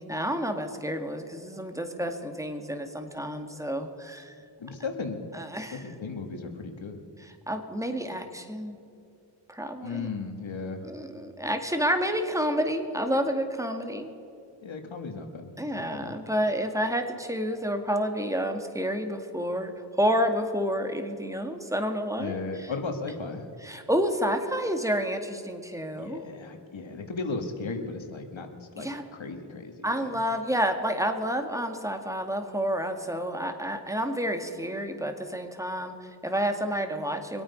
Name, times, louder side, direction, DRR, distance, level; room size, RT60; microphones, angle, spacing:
voice 1, 0.0-4.3 5.3-5.9 7.2-8.8 9.5-10.1 10.8-14.1 15.6-22.7 23.6-26.2 28.8-29.0 29.8-37.4, equal, 5° right, 6 dB, 2.0 m, -29 dB
voice 2, 4.6-5.3 5.7-7.0 9.8-10.8 14.6-16.2 22.2-23.4 26.0-30.2, left 4 dB, 80° left, 5 dB, 1.6 m, -36 dB
24.5 x 8.9 x 5.4 m, 2.7 s
cardioid pair, 40°, 46 cm